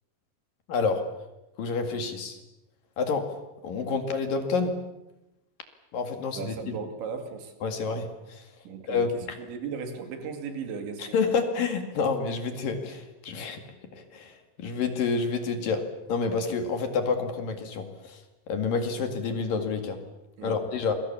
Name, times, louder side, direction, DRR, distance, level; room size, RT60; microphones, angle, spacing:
voice 1, 0.7-1.0 1.6-2.4 3.0-3.3 3.6-4.8 5.9-6.5 7.6-8.5 8.9-9.4 11.0-13.6 13.9-15.8 16.1-18.2 18.5-20.0 20.4-20.9, left 4 dB, 55° left, 6 dB, 3.5 m, -28 dB
voice 2, 6.4-7.5 8.6-9.0 9.4-11.1 20.4-20.6, right 6 dB, 85° right, 6 dB, 4.9 m, -36 dB
28.0 x 23.0 x 7.3 m, 0.94 s
omnidirectional pair, 5.0 m